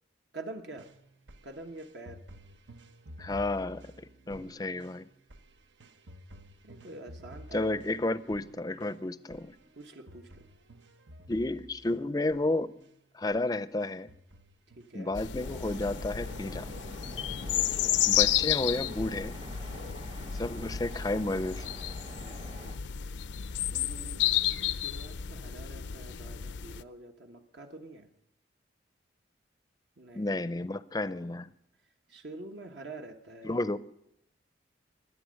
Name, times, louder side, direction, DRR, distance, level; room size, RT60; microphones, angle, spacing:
voice 1, 0.3-0.9 1.4-2.2 4.2-4.7 6.6-7.8 9.8-10.4 14.8-15.1 17.6-18.0 23.7-24.2 24.7-28.1 30.0-30.6 32.1-33.6, right 2 dB, 70° right, 4 dB, 1.2 m, -46 dB
sound 1, 0.7-12.9 13.3-13.5 13.8-15.9 16.3-16.9 17.3-17.4, equal, 85° right, 0.9 m, -52 dB
voice 2, 3.2-5.1 7.5-9.5 11.3-12.7 13.1-14.1 14.9-16.7 18.1-19.3 20.3-21.8 30.1-31.5 33.4-33.8, left 2 dB, 20° left, 15 dB, 0.5 m, -32 dB
sound 2, 15.1-26.8, left 11 dB, 75° left, 0.5 m, -32 dB
sound 3, 15.4-22.8, equal, 30° right, 0.9 m, -46 dB
22.5 x 8.5 x 6.4 m, 0.81 s
head